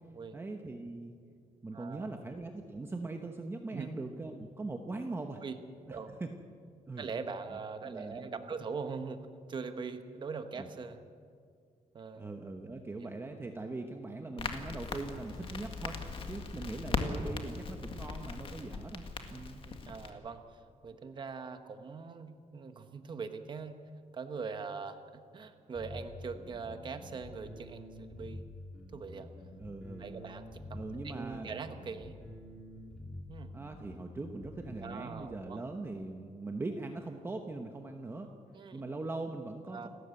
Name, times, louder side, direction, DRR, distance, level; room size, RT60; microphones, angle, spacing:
voice 1, 0.3-1.2 1.6-5.4 5.9-6.3 6.9-7.1 7.5-7.6 7.8-8.5 10.5-10.7 12.1-16.0 16.3-19.0 19.3-19.6 29.6-30.3 30.7-31.5 33.5-38.3 38.7-39.9, right 2 dB, 15° right, 4 dB, 1.0 m, -41 dB
voice 2, 1.7-2.1 3.7-3.9 5.4-5.6 5.9-6.1 7.0-9.2 9.5-11.0 11.9-12.2 13.0-13.1 19.6-23.8 24.1-28.4 28.9-29.3 30.0-32.2 33.3-33.5 34.8-35.6 38.5-38.8 39.7-39.9, right 5 dB, 35° right, 8 dB, 1.3 m, -42 dB
Crackle, 14.4-20.1, left 4 dB, 40° left, 1.8 m, -39 dB
sound 1, 14.8-20.2, left 1 dB, 25° left, 5.5 m, -60 dB
sound 2, 25.7-35.3, left 1 dB, 5° left, 4.6 m, -48 dB
28.5 x 13.0 x 8.3 m, 2.2 s
wide cardioid pair, 170°, 13 cm